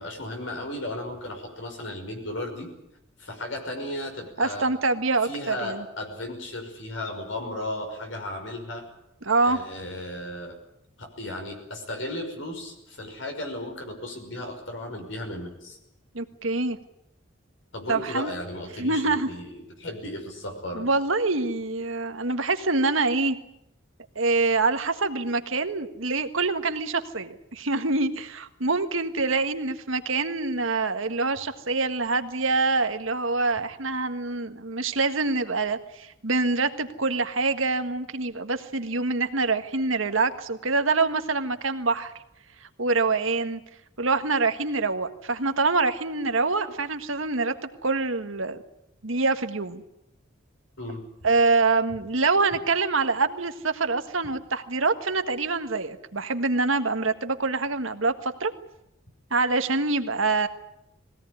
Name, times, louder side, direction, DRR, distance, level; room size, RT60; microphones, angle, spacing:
voice 1, 0.0-2.7 3.2-4.7 5.2-8.8 9.5-10.5 11.0-15.8 17.7-20.9 50.8-51.0, left 1 dB, 65° left, 3 dB, 5.9 m, -35 dB
voice 2, 4.4-5.8 9.2-9.6 16.1-16.8 17.9-18.3 18.8-19.3 20.7-23.4 24.1-42.1 42.8-43.6 44.0-47.5 47.8-48.6 49.0-49.8 51.2-58.5 59.3-60.5, right 3 dB, 75° right, 8 dB, 1.6 m, -25 dB
21.0 x 17.5 x 9.8 m, 0.82 s
head